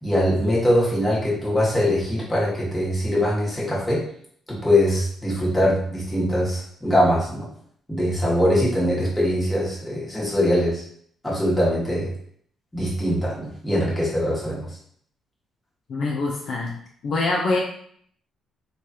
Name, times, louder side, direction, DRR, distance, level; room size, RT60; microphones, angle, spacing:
voice 1, 0.0-4.0 4.5-7.5 7.9-10.8 11.2-12.1 12.7-14.6, equal, 10° left, -6 dB, 1.3 m, -22 dB
voice 2, 15.9-16.8 17.0-17.6, left 3 dB, 60° left, -2 dB, 0.4 m, -24 dB
3.1 x 2.3 x 2.7 m, 0.63 s
cardioid pair, 90°, 0 cm